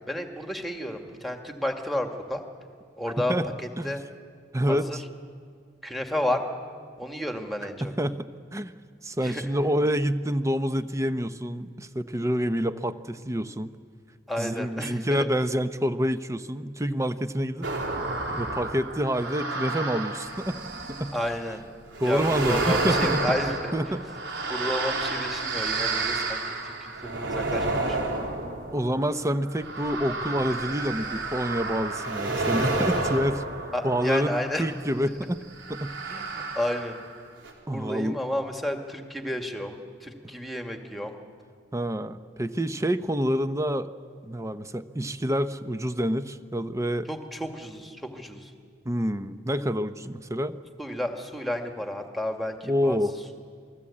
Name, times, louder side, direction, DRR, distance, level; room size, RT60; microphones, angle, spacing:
voice 1, 0.1-2.4 3.0-3.3 3.6-4.0 4.7-5.0 5.8-6.4 7.0-7.9 9.2-9.4 14.3-15.3 21.1-21.6 22.0-23.7 24.5-28.3 33.7-34.6 36.1-37.0 37.7-41.2 47.1-48.5 50.8-53.0, left 1 dB, ahead, 4 dB, 2.1 m, -31 dB
voice 2, 3.2-3.5 3.8-4.0 4.5-5.0 7.8-8.7 9.0-13.7 14.4-17.7 18.3-20.6 20.9-21.1 22.0-23.2 23.7-24.0 28.7-33.4 33.8-35.4 35.7-36.2 37.7-38.2 41.7-43.9 44.2-47.1 48.8-50.6 52.7-53.1, equal, 15° right, 11 dB, 0.8 m, -27 dB
sound 1, 17.6-21.3 21.9-34.8 35.6-37.2 37.4-37.5, right 2 dB, 85° right, 4.1 m, -30 dB
28.0 x 20.0 x 8.6 m, 2.1 s
head